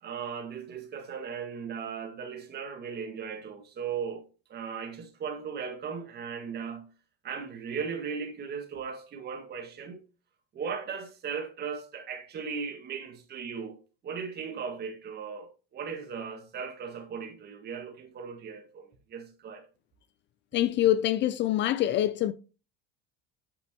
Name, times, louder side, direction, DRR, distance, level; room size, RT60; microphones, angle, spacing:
voice 1, 0.0-4.2 4.5-6.8 7.2-10.0 10.5-13.8 14.0-19.6, right 6 dB, 35° right, 1.7 m, -37 dB
voice 2, 20.5-22.3, left 13 dB, 40° left, 0.4 m, -25 dB
8.9 x 5.9 x 2.9 m
cardioid pair, 145°, 29 cm